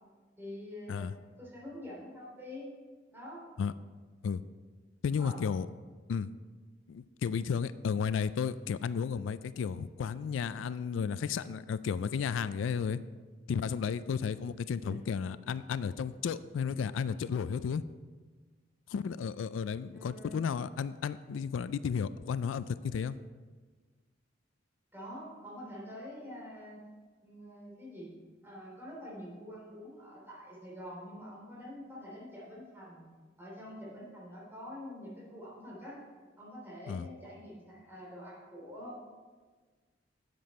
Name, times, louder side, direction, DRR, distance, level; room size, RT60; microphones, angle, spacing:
voice 1, 0.4-2.7 3.1-3.4 5.1-5.4 14.8-15.0 19.9-20.4 24.9-26.8 27.2-28.1 28.4-33.1 33.4-36.0 36.4-39.0, equal, 10° right, -5 dB, 3.2 m, -46 dB
voice 2, 5.0-5.7 6.1-6.3 6.9-13.0 13.5-17.8 18.9-23.2 36.9-37.1, left 6 dB, 90° left, 15 dB, 0.3 m, -33 dB
10.5 x 7.8 x 4.2 m, 1.4 s
head